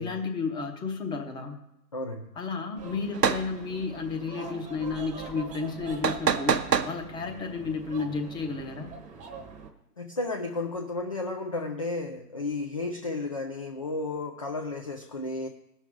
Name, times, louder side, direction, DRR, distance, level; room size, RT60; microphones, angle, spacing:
voice 1, 0.0-1.6 2.4-8.9, left 4 dB, 10° left, 4 dB, 0.7 m, -32 dB
voice 2, 1.9-2.4 10.0-15.5, left 2 dB, 25° left, 3 dB, 0.3 m, -33 dB
sound 1, 2.8-9.7, right 4 dB, 15° right, 0.9 m, -44 dB
sound 2, 3.1-3.4 6.0-6.9, right 6 dB, 85° right, 0.8 m, -24 dB
18.0 x 6.2 x 3.6 m, 0.82 s
figure-of-eight pair, 120°, 47 cm